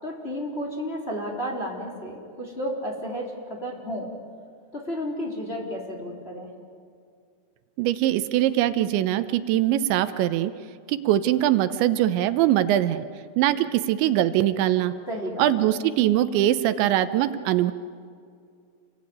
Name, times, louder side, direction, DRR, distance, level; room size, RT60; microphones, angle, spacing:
voice 1, 0.0-4.1 4.7-6.5 15.1-15.7, equal, 15° left, -2 dB, 3.4 m, -32 dB
voice 2, 7.8-10.5 10.9-13.0 13.4-14.9 15.4-17.7, right 13 dB, 85° right, 11 dB, 3.2 m, -22 dB
28.5 x 22.0 x 9.4 m, 2.3 s
omnidirectional pair, 5.1 m